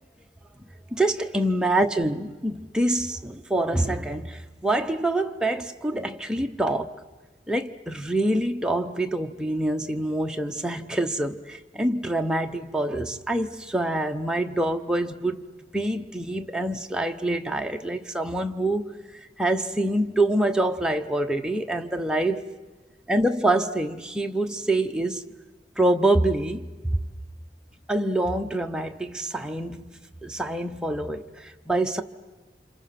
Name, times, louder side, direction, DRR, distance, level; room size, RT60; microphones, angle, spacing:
voice 1, 0.9-6.9 7.5-15.4 15.7-18.9 19.4-22.5 23.1-25.2 25.8-27.0 27.9-29.9 30.2-32.0, right 1 dB, 5° right, 0.9 m, -26 dB
30.0 x 27.5 x 5.9 m
head